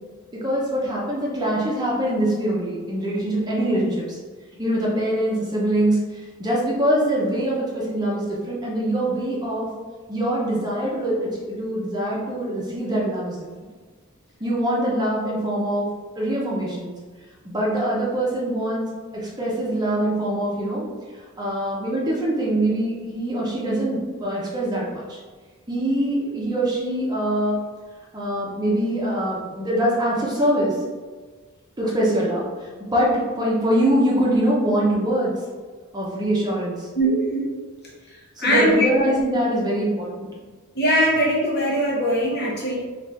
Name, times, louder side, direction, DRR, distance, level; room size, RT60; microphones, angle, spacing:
voice 1, 0.3-4.2 4.6-9.7 10.1-13.4 14.4-16.9 17.4-20.8 21.4-25.2 25.7-27.6 28.1-30.8 31.8-35.4 35.9-36.9 38.4-40.3, right 1 dB, 20° right, -5 dB, 0.7 m, -23 dB
voice 2, 37.0-37.4 38.4-38.9 40.8-42.8, equal, 50° left, -4 dB, 1.0 m, -20 dB
4.2 x 2.5 x 3.4 m, 1.4 s
head